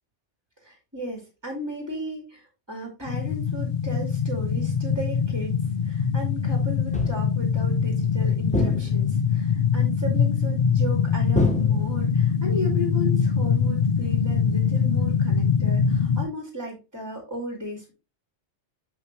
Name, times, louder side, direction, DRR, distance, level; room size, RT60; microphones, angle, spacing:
voice 1, 0.6-17.9, equal, 15° right, -2 dB, 2.4 m, -35 dB
sound 1, 3.0-16.2, left 6 dB, 50° left, 0.6 m, -23 dB
sound 2, 6.9-7.4 8.5-9.3 11.3-12.3, left 1 dB, 5° left, 1.0 m, -28 dB
6.8 x 5.6 x 3.1 m, 0.27 s
omnidirectional pair, 1.2 m